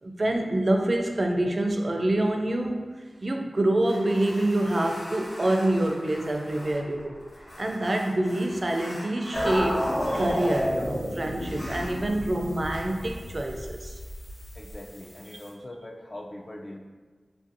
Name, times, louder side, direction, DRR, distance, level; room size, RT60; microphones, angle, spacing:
voice 1, 0.0-2.8 3.2-7.2 7.6-13.9, right 1 dB, 50° right, 3 dB, 0.4 m, -26 dB
sound 1, 3.8-10.7 11.4-12.0 12.7-12.9, equal, 75° left, 1.1 m, -43 dB
sound 2, 9.3-15.5, equal, 25° left, 0.7 m, -31 dB
voice 2, 14.6-16.8, left 1 dB, 45° left, 1 dB, 0.4 m, -41 dB
3.1 x 2.6 x 2.6 m, 1.5 s
wide cardioid pair, 50°, 0 cm